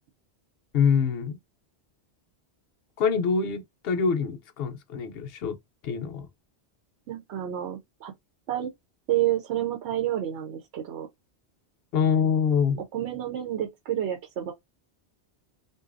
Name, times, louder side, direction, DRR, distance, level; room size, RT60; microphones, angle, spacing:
voice 1, 0.7-1.3 3.0-5.6 5.8-6.3 11.9-12.8, left 6 dB, 65° left, 0.7 m, -25 dB
voice 2, 7.1-8.1 8.5-8.7 9.1-11.1 11.9-12.3 12.9-14.5, right 12 dB, 85° right, 0.9 m, -29 dB
2.6 x 2.2 x 2.4 m
omnidirectional pair, 1.1 m